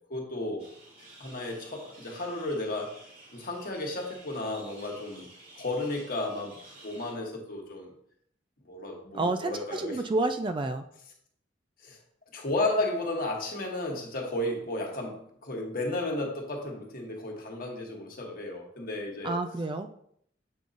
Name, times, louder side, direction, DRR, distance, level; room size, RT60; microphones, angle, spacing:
voice 1, 0.1-0.6 1.2-2.9 3.3-5.3 5.6-6.6 6.8-7.9 8.6-10.0 11.8-12.0 12.3-19.4, left 2 dB, 50° left, 0 dB, 1.3 m, -33 dB
sound 1, 0.6-7.1, right 2 dB, 50° right, 1.9 m, -52 dB
voice 2, 9.1-10.8 19.2-19.9, right 2 dB, 25° right, 8 dB, 0.3 m, -29 dB
7.6 x 5.3 x 2.5 m, 0.66 s
head